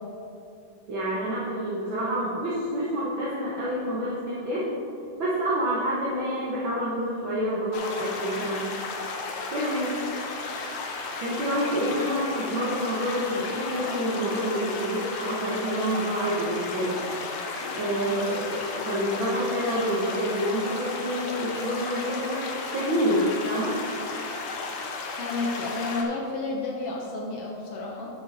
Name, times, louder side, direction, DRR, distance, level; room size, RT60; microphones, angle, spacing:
voice 1, 0.9-4.6 5.2-8.7 9.5-10.0 11.2-17.0 17.7-22.4 22.7-23.8, equal, 55° right, -7 dB, 1.5 m, -28 dB
sound 1, 7.7-26.0, left 3 dB, 85° left, 2.5 m, -34 dB
voice 2, 25.2-28.1, left 3 dB, 65° left, -2 dB, 1.5 m, -31 dB
9.4 x 7.6 x 4.1 m, 2.7 s
omnidirectional pair, 3.6 m